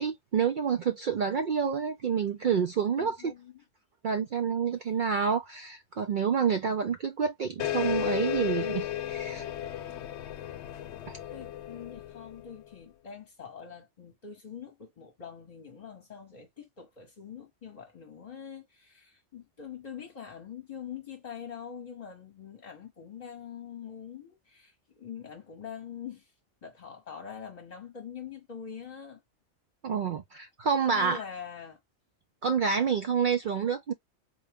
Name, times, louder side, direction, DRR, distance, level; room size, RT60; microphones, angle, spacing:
voice 1, 0.0-3.3 4.0-9.5 11.1-11.2 29.8-31.2 32.4-33.9, right 6 dB, 60° right, 0.5 m, -28 dB
voice 2, 3.0-3.5 11.3-26.3 26.6-29.2 30.9-31.8, left 7 dB, 35° left, 1.0 m, -44 dB
sound 1, 7.6-12.7, left 12 dB, 70° left, 0.8 m, -34 dB
3.9 x 2.2 x 3.4 m
omnidirectional pair, 1.2 m